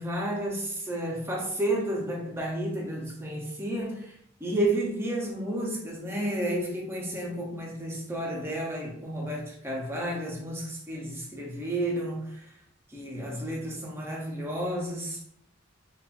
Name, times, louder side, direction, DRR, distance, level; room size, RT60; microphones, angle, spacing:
voice 1, 0.0-12.5 12.9-15.2, right 1 dB, 10° right, 0.5 m, -31 dB
2.8 x 2.2 x 2.4 m
head